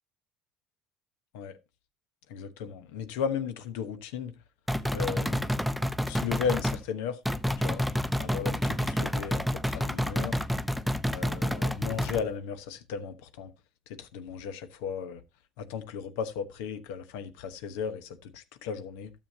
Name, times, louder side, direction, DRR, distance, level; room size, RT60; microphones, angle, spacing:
voice 1, 2.3-4.4 4.9-5.5 6.1-7.2 7.6-7.8 8.2-10.4 11.1-13.5 13.9-15.2 15.6-19.1, left 7 dB, 85° left, 1.0 m, -35 dB
sound 1, 4.7-6.8 7.2-12.2, equal, ahead, 0.6 m, -29 dB
12.5 x 7.0 x 2.7 m
supercardioid pair, 105°, 0 cm